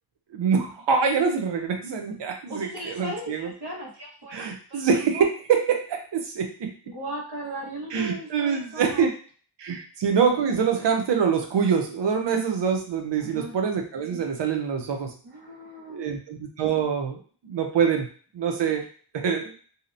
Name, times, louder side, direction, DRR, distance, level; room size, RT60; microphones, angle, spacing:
voice 1, 0.3-3.5 4.3-6.7 7.9-9.1 9.6-15.1 15.9-18.1 18.3-18.8 19.1-19.5, right 6 dB, 90° right, 4 dB, 0.6 m, -25 dB
voice 2, 2.5-5.3 6.8-9.1 9.7-9.8 13.2-13.5 15.2-16.1, right 1 dB, 70° right, -3 dB, 1.2 m, -37 dB
2.7 x 2.0 x 2.5 m, 0.42 s
cardioid pair, 50°, 41 cm